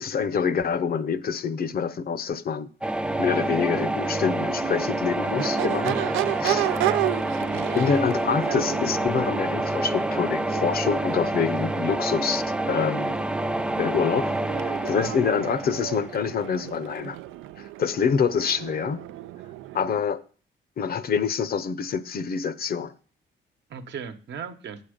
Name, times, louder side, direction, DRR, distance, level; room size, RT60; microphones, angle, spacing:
voice 1, 0.0-2.7 3.2-6.0 6.4-6.7 7.7-13.1 13.8-17.2 17.6-19.1 19.7-20.2 20.8-22.9, left 6 dB, 50° left, 0.7 m, -26 dB
sound 1, 2.8-16.6, right 1 dB, 5° right, 0.3 m, -28 dB
Crowd / Race car auto racing / Accelerating revving vroom, 3.0-20.0, right 16 dB, 90° right, 0.4 m, -33 dB
voice 2, 6.4-7.0 15.0-15.3 23.7-24.8, right 6 dB, 65° right, 1.0 m, -38 dB
7.9 x 7.3 x 5.0 m
cardioid pair, 90°, 20 cm